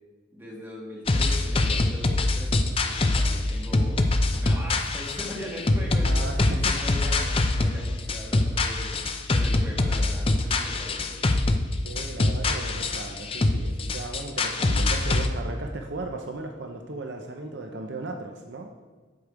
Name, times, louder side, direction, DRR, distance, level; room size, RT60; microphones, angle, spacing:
voice 1, 0.3-4.0 4.3-11.2, left 1 dB, 10° right, -4 dB, 1.9 m, -40 dB
sound 1, 1.1-15.3, left 2 dB, 30° left, 0.5 m, -24 dB
voice 2, 6.0-6.8 11.8-18.7, right 2 dB, 60° right, 3 dB, 0.6 m, -36 dB
8.3 x 6.6 x 4.7 m, 1.4 s
head